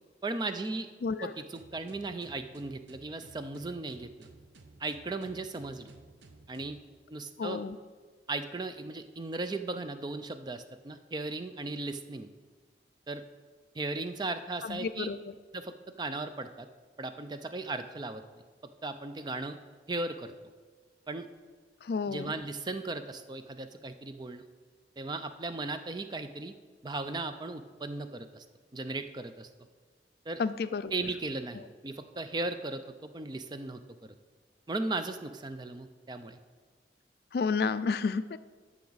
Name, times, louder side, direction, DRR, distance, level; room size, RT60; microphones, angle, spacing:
voice 1, 0.2-0.9 1.2-4.3 4.8-5.9 6.5-6.8 7.1-7.6 8.3-12.3 13.1-13.2 13.7-15.1 15.5-16.7 17.0-18.2 18.8-19.6 19.9-20.3 21.1-21.3 22.1-24.4 25.0-26.5 26.8-28.4 28.7-29.5 30.3-30.4 30.9-34.1 34.7-36.4, right 2 dB, 25° right, 9 dB, 0.4 m, -37 dB
voice 2, 1.0-1.3 7.4-7.8 14.6-15.2 21.8-22.3 30.4-30.9 37.3-38.4, left 5 dB, 55° left, 14 dB, 0.3 m, -31 dB
sound 1, 1.5-6.8, right 3 dB, 85° right, 0.8 m, -55 dB
13.0 x 5.9 x 4.0 m, 1.5 s
head